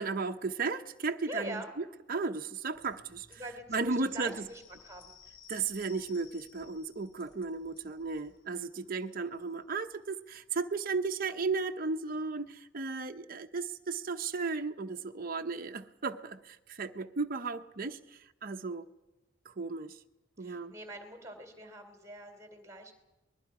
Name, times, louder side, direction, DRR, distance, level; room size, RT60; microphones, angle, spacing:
voice 1, 0.0-3.4 3.7-4.5 5.5-18.8 19.4-20.0 20.4-20.7, right 4 dB, 50° right, 0.8 m, -35 dB
voice 2, 1.3-1.7 3.3-5.1 20.4-22.9, right 1 dB, 15° right, 3.0 m, -44 dB
sound 1, 2.7-8.3, left 1 dB, 30° left, 7.2 m, -65 dB
sound 2, 4.1-11.2, left 8 dB, 85° left, 3.4 m, -60 dB
29.0 x 21.0 x 4.9 m
head